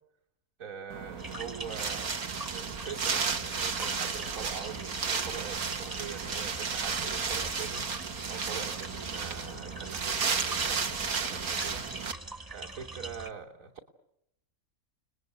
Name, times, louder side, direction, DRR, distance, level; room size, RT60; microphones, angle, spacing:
voice 1, 0.6-2.2 2.5-7.9 8.3-11.8 12.5-13.9, right 6 dB, 65° right, 2 dB, 3.1 m, -43 dB
Wind, 0.9-12.1, right 5 dB, 85° right, 2.0 m, -33 dB
sound 1, 1.2-13.3, right 2 dB, 15° right, 0.9 m, -43 dB
30.0 x 20.5 x 9.6 m, 0.80 s
omnidirectional pair, 1.5 m